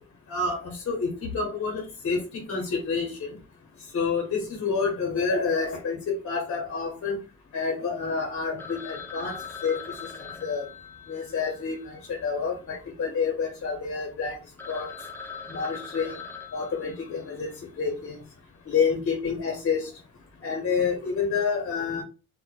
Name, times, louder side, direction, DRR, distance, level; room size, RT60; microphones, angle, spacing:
voice 1, 0.3-3.3 3.9-7.2 7.5-9.4 9.6-9.8 10.4-10.7 11.1-14.4 14.7-14.9 15.5-16.2 16.5-18.2 18.7-19.9 20.4-22.0, left 5 dB, 50° left, 1 dB, 0.8 m, -28 dB
Telephone, 8.6-12.9 13.2-13.3 13.8-13.9 14.3-14.4 14.6-17.5, left 5 dB, 10° left, 0.3 m, -42 dB
2.1 x 2.0 x 3.0 m, 0.30 s
cardioid pair, 90°, 30 cm